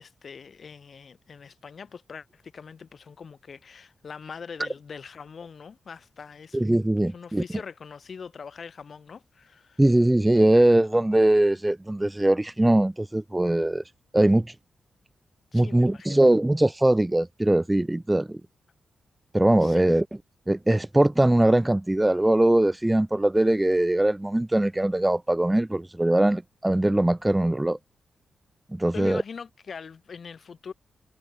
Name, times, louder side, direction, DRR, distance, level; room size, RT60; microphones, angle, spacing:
voice 1, 0.0-6.6 7.0-9.8 15.5-16.3 19.6-19.9 28.9-30.7, left 6 dB, 40° left, 7.8 m, -42 dB
voice 2, 6.5-7.4 9.8-13.8 14.1-14.5 15.5-18.4 19.3-20.0 20.5-27.8 28.7-29.2, right 1 dB, 10° right, 2.2 m, -21 dB
wide cardioid pair, 180°, 0 cm